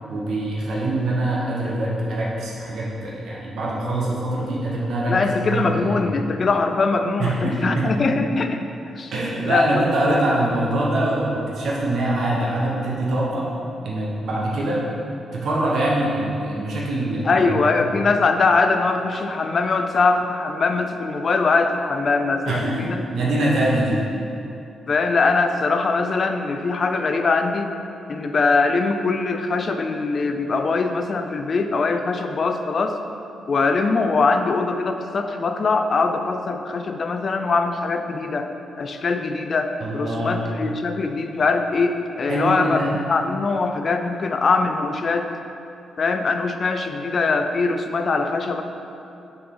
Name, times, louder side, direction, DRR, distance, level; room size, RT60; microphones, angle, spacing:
voice 1, 0.1-6.1 7.2-8.2 9.1-13.5 13.8-14.8 15.3-17.7 22.4-24.0 39.8-40.4 42.2-42.9, right 1 dB, 60° right, -5 dB, 1.0 m, -24 dB
voice 2, 5.1-8.6 9.0-9.1 9.4-10.2 17.2-23.0 24.9-27.7 28.1-33.0 33.5-38.5 38.8-45.3 46.0-48.6, left 4 dB, 35° left, 6 dB, 0.3 m, -22 dB
6.7 x 4.0 x 3.8 m, 2.7 s
wide cardioid pair, 160°, 0 cm